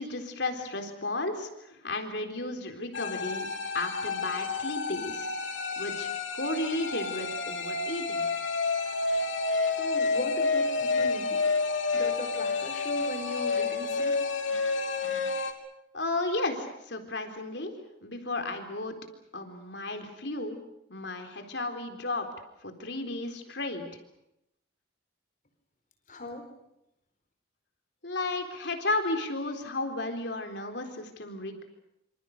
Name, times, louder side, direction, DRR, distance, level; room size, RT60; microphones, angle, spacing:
voice 1, 0.0-3.5 3.7-5.3 5.8-8.3 15.9-17.7 18.0-18.9 19.3-20.6 20.9-22.3 22.6-24.0 28.0-31.6, left 2 dB, 65° left, 5 dB, 3.9 m, -33 dB
sound 1, 2.9-15.5, left 4 dB, 90° left, 3.4 m, -29 dB
voice 2, 9.7-11.4 11.9-14.1 26.1-26.4, left 1 dB, 45° left, 6 dB, 4.5 m, -38 dB
27.0 x 26.5 x 6.8 m, 0.82 s
head